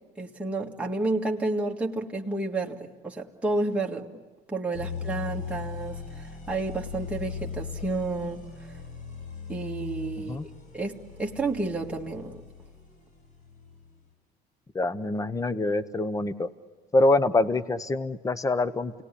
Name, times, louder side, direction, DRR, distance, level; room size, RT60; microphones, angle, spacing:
voice 1, 0.2-4.1 4.5-8.4 9.5-10.4 10.7-12.4, right 2 dB, 5° right, -2 dB, 1.9 m, -30 dB
sound 1, 4.7-13.9, left 6 dB, 55° left, 7.6 m, -39 dB
voice 2, 14.7-16.5 16.9-19.0, left 2 dB, 20° left, 13 dB, 0.9 m, -25 dB
29.5 x 19.0 x 9.9 m, 1.5 s
cardioid pair, 110°, 17 cm